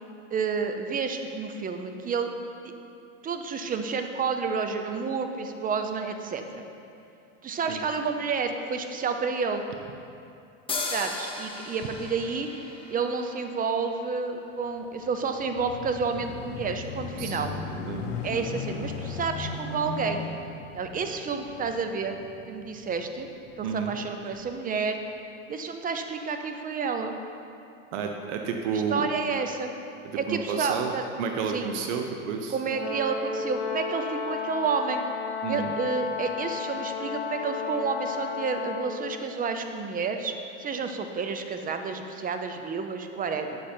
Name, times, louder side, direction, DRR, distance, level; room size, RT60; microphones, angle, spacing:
voice 1, 0.3-2.3 3.2-6.6 7.4-9.6 10.9-12.5 12.9-17.5 18.2-20.2 20.7-23.3 23.6-25.0 25.5-27.1 28.7-29.7 30.1-31.1 31.5-31.7 32.5-35.0 35.5-40.3 40.6-43.6, right 5 dB, 20° right, 6 dB, 0.7 m, -30 dB
sound 1, 10.7-14.2, left 3 dB, 15° left, 1.1 m, -36 dB
sound 2, 14.9-23.7 24.4-24.5, left 4 dB, 75° left, 1.1 m, -37 dB
voice 2, 23.6-24.0 27.9-29.1 30.3-30.9 31.2-32.5 35.4-35.7, right 6 dB, 65° right, 3 dB, 0.9 m, -30 dB
Brass instrument, 32.7-39.1, left 5 dB, 40° left, 1.4 m, -33 dB
8.3 x 7.6 x 4.4 m, 2.6 s
supercardioid pair, 110°, 38 cm